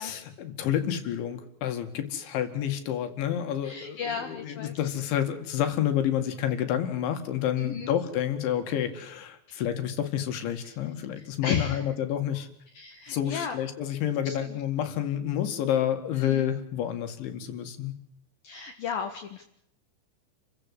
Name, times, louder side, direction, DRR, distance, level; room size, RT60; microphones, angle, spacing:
voice 1, 0.0-12.5 13.1-17.9, left 10 dB, 75° left, 7 dB, 4.5 m, -29 dB
voice 2, 3.6-4.7 7.6-7.9 10.6-10.8 11.2-11.9 12.7-13.6 14.4-14.6 16.1-16.5 18.4-19.4, left 7 dB, 60° left, 5 dB, 2.9 m, -34 dB
29.5 x 16.0 x 8.3 m, 0.76 s
omnidirectional pair, 5.4 m